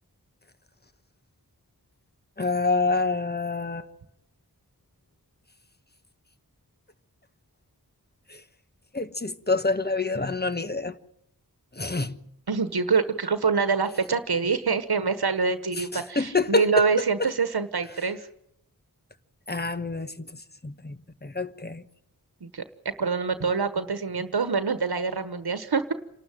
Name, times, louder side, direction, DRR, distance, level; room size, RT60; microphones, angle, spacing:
voice 1, 2.4-3.9 8.3-8.4 8.9-10.9 11.7-12.2 15.8-16.8 19.5-20.3 20.6-21.8, left 3 dB, 25° left, 1.2 m, -27 dB
voice 2, 12.5-18.3 22.4-25.9, right 5 dB, 90° right, 1.3 m, -25 dB
27.5 x 12.5 x 9.1 m
wide cardioid pair, 60°, 37 cm